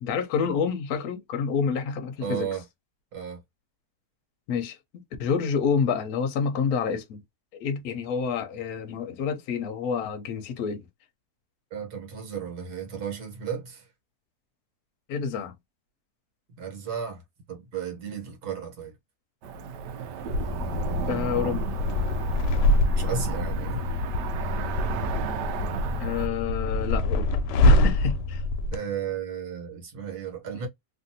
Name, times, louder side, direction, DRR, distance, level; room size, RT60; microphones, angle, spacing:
voice 1, 0.0-2.5 4.5-4.8 5.2-7.2 7.5-10.8 15.1-15.5 21.1-21.7 26.0-27.3 27.6-28.4, left 6 dB, 70° left, 1.1 m, -28 dB
voice 2, 2.2-2.6 3.1-3.4 11.7-13.9 16.6-17.2 17.5-18.9 22.9-23.9 28.7-30.7, right 7 dB, 70° right, 1.7 m, -34 dB
Cricket / Motor vehicle (road), 19.4-26.3, right 2 dB, 90° right, 1.2 m, -31 dB
sound 1, 20.3-28.8, left 1 dB, 90° left, 1.2 m, -25 dB
3.1 x 2.6 x 2.6 m
omnidirectional pair, 1.8 m